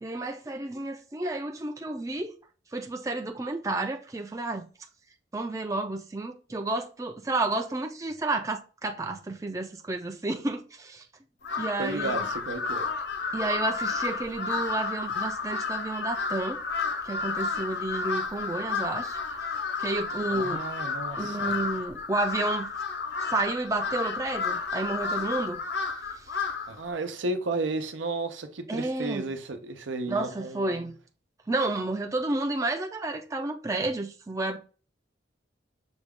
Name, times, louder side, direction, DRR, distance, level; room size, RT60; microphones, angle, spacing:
voice 1, 0.0-2.3 2.7-4.7 5.3-11.0 11.6-12.2 13.3-16.6 17.0-19.2 19.8-20.7 21.2-22.7 23.3-25.6 26.2-26.3 28.7-29.3 30.1-30.9 31.5-34.6, right 2 dB, 15° right, 0.4 m, -31 dB
Crow, 11.4-26.8, left 4 dB, 65° left, 0.6 m, -32 dB
voice 2, 11.8-12.9 20.3-21.6 26.7-30.9, right 2 dB, 90° right, 0.7 m, -33 dB
6.1 x 2.3 x 3.6 m
head